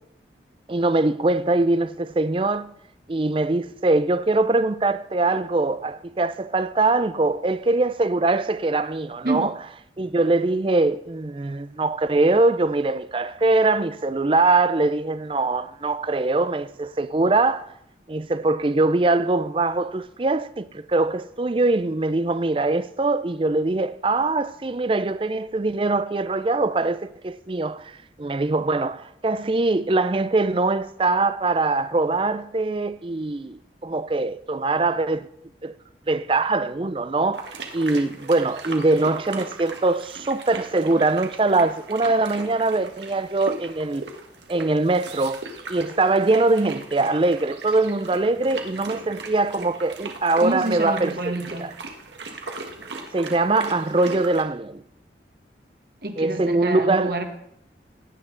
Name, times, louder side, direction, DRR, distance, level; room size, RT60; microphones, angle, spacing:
voice 1, 0.7-2.7 3.1-9.5 10.0-17.7 18.1-27.9 28.2-35.3 35.6-35.7 36.1-37.5 37.7-44.1 44.5-45.4 45.7-51.1 51.6-51.7 53.1-54.8 56.2-57.1, right 2 dB, 30° right, 0.5 m, -22 dB
sound 1, 37.3-54.4, right 3 dB, 90° right, 1.6 m, -38 dB
voice 2, 50.4-51.7 56.0-57.3, right 2 dB, 55° right, 1.5 m, -27 dB
16.5 x 9.7 x 3.9 m
head